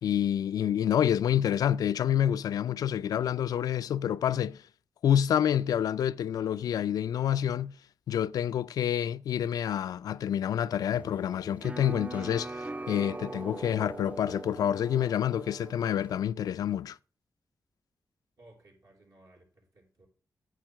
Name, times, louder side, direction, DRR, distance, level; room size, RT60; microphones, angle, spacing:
voice 1, 0.0-4.6 5.0-7.8 8.1-17.0, left 10 dB, 90° left, 0.4 m, -28 dB
sound 1, 10.9-16.2, right 2 dB, 20° right, 0.4 m, -41 dB
voice 2, 18.4-20.1, right 1 dB, 70° right, 4.0 m, -58 dB
9.0 x 6.4 x 5.0 m
cardioid pair, 70°, 6 cm